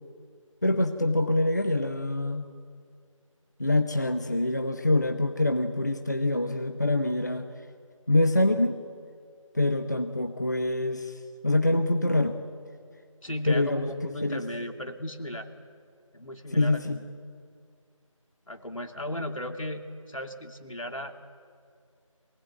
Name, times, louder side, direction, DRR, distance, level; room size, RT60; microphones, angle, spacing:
voice 1, 0.6-2.5 3.6-7.5 8.1-8.8 9.5-11.1 11.4-12.4 13.5-13.9 14.2-14.5 16.5-17.0, left 2 dB, 30° left, 7 dB, 0.9 m, -25 dB
voice 2, 13.2-15.5 16.1-17.1 18.5-21.1, left 1 dB, 75° left, 4 dB, 2.8 m, -36 dB
23.5 x 18.5 x 9.4 m, 2.1 s
figure-of-eight pair, 170°, 17 cm